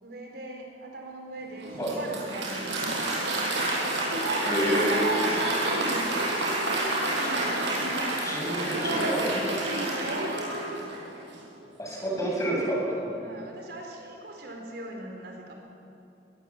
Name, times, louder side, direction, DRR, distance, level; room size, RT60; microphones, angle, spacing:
voice 1, 0.0-3.8 4.5-6.6 8.1-11.0 13.2-15.5, right 1 dB, 65° right, 1 dB, 4.3 m, -42 dB
Applause, 1.6-11.2, right 2 dB, 90° right, 5.9 m, -28 dB
voice 2, 4.5-5.1 7.1-7.5 8.2-9.2 11.8-12.8, equal, 20° left, -3 dB, 7.2 m, -29 dB
22.5 x 22.0 x 7.4 m, 2.8 s
head